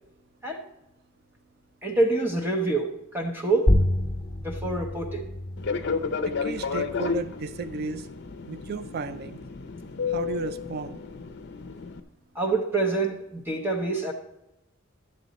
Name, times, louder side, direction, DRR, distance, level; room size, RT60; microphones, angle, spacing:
voice 1, 1.8-3.7 4.4-5.3 12.3-14.1, right 2 dB, 10° right, 0 dB, 0.9 m, -26 dB
sound 1, 3.7-8.7, left 1 dB, 20° left, 1.2 m, -29 dB
Fixed-wing aircraft airplane, 5.6-12.0, left 5 dB, 55° left, 0.6 m, -32 dB
voice 2, 6.3-8.1 8.5-9.4 10.1-11.0, right 5 dB, 50° right, 14 dB, 0.4 m, -34 dB
11.5 x 7.6 x 4.1 m, 0.92 s
head